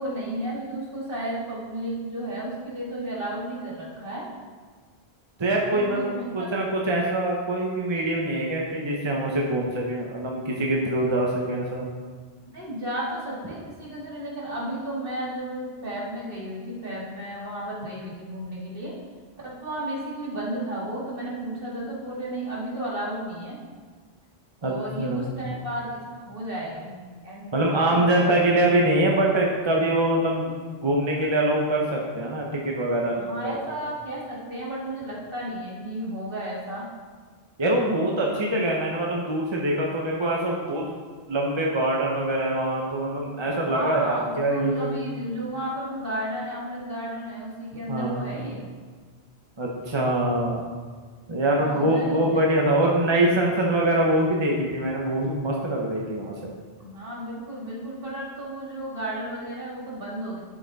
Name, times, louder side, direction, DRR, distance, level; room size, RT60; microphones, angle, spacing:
voice 1, 0.0-4.3 5.7-6.5 12.5-18.9 19.4-23.6 24.6-28.3 33.1-36.9 43.6-48.7 51.4-52.5 56.8-60.4, right 1 dB, 55° right, -5 dB, 2.4 m, -33 dB
voice 2, 5.4-11.9 24.6-25.4 27.5-30.5 30.8-33.6 37.6-40.8 41.3-45.0 47.9-48.3 49.6-50.6 51.3-56.5, right 1 dB, 25° right, -2 dB, 1.0 m, -24 dB
11.5 x 5.8 x 4.1 m, 1.5 s
omnidirectional pair, 1.1 m